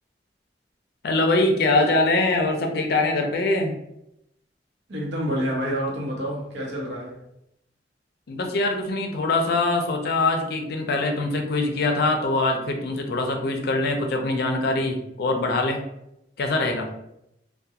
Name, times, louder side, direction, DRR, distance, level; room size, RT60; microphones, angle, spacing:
voice 1, 1.0-3.8 8.3-15.8 16.4-16.9, left 2 dB, 65° left, 4 dB, 0.4 m, -23 dB
voice 2, 4.9-7.2, equal, 80° right, -2 dB, 0.8 m, -28 dB
2.3 x 2.2 x 2.7 m, 0.82 s
head